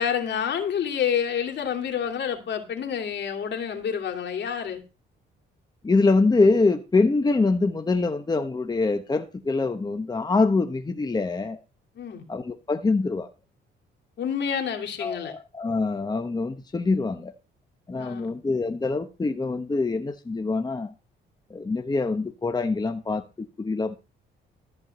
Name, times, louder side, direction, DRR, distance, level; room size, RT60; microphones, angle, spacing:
voice 1, 0.0-4.8 11.9-12.2 14.2-15.3 18.0-18.3, left 8 dB, 60° left, 2.9 m, -28 dB
voice 2, 5.8-11.6 12.3-13.3 15.0-17.3 17.9-20.9 21.5-23.2 23.6-24.0, left 3 dB, 20° left, 1.1 m, -24 dB
14.0 x 4.7 x 7.9 m
cardioid pair, 90°, 20 cm